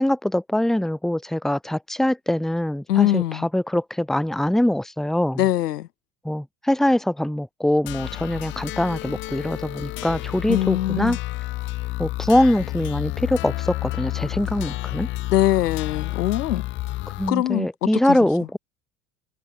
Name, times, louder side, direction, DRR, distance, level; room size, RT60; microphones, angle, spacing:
voice 1, 0.0-5.4 6.2-11.2 12.0-15.1 17.2-18.6, left 1 dB, ahead, 1.0 m, -23 dB
voice 2, 2.9-3.5 5.4-5.9 10.5-11.2 15.3-16.6 17.3-17.7 18.1-18.2, left 13 dB, 80° left, 0.8 m, -22 dB
sound 1, 7.9-17.3, left 17 dB, 30° left, 0.3 m, -30 dB
figure-of-eight pair, 70°, 46 cm